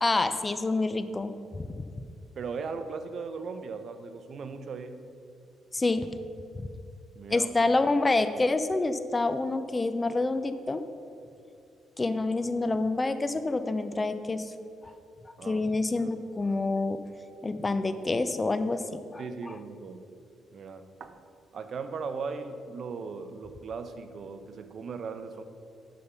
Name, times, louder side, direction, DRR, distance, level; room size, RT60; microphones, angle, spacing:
voice 1, 0.0-1.7 5.7-6.1 6.6-6.7 7.3-10.8 12.0-14.5 15.5-17.0 17.4-18.8 19.1-19.2, left 3 dB, 25° left, 11 dB, 0.5 m, -27 dB
voice 2, 2.4-5.0 7.1-7.5 14.8-15.0 15.4-15.6 16.0-16.1 19.2-20.0 20.5-21.2 21.5-25.4, right 5 dB, 55° right, 9 dB, 0.7 m, -38 dB
11.5 x 5.2 x 5.7 m, 2.5 s
cardioid pair, 90°, 0 cm